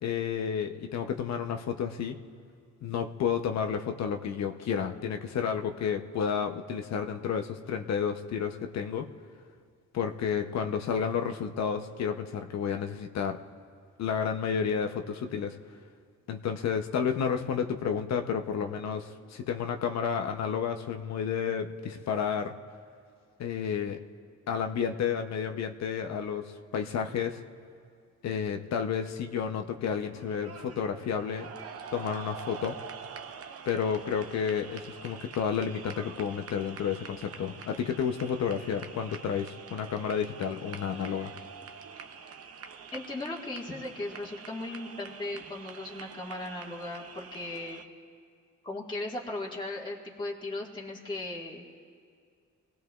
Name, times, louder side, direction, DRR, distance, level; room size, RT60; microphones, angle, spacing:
voice 1, 0.0-2.2 2.8-9.1 9.9-13.4 14.0-15.6 16.3-22.5 23.4-24.0 24.5-27.4 28.2-31.5 31.9-32.8 33.7-41.3, left 7 dB, 60° left, 6 dB, 0.8 m, -31 dB
sound 1, 29.9-47.8, right 6 dB, 50° right, 0.8 m, -46 dB
voice 2, 42.9-47.8 48.6-51.6, left 2 dB, 15° left, -4 dB, 1.7 m, -37 dB
24.0 x 17.0 x 2.4 m, 2.2 s
cardioid pair, 90°, 30 cm